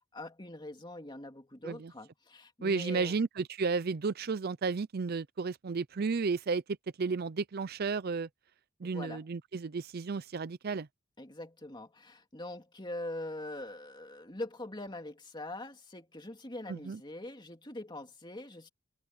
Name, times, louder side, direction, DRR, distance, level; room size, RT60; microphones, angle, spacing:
voice 1, 0.1-3.2 8.8-9.3 11.2-18.7, left 1 dB, 20° left, 2.7 m, -43 dB
voice 2, 2.6-6.6 7.0-8.3 8.8-10.9 16.7-17.0, right 4 dB, 50° right, 0.5 m, -33 dB
open air
head